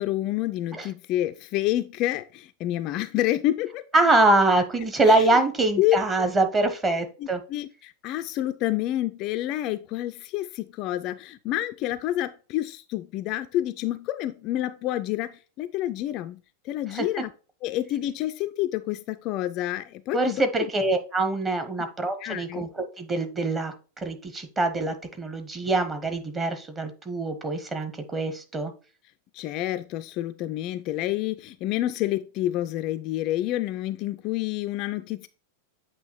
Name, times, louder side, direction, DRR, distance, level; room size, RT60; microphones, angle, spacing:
voice 1, 0.0-3.9 5.0-5.4 5.8-6.0 7.2-17.3 17.6-20.5 22.2-22.6 29.3-35.3, left 14 dB, 40° left, 0.3 m, -28 dB
voice 2, 3.9-7.4 16.9-17.1 20.1-28.7, right 2 dB, 20° right, 1.1 m, -24 dB
8.2 x 2.9 x 4.3 m
figure-of-eight pair, 90°, 0 cm